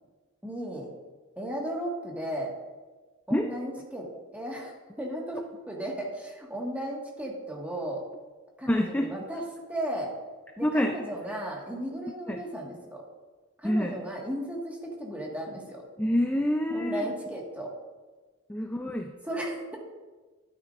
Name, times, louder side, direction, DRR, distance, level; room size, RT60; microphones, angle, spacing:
voice 1, 0.4-0.9 1.4-2.5 3.3-4.1 4.3-8.0 8.6-9.4 9.7-10.1 10.6-13.0 13.6-15.8 16.7-17.7 19.3-19.8, right 1 dB, 5° right, -2 dB, 1.7 m, -35 dB
voice 2, 8.6-9.1 10.6-11.0 12.3-12.4 13.6-14.0 16.0-17.1 18.5-19.1, equal, 10° left, 4 dB, 0.4 m, -27 dB
12.5 x 9.3 x 2.5 m, 1.3 s
head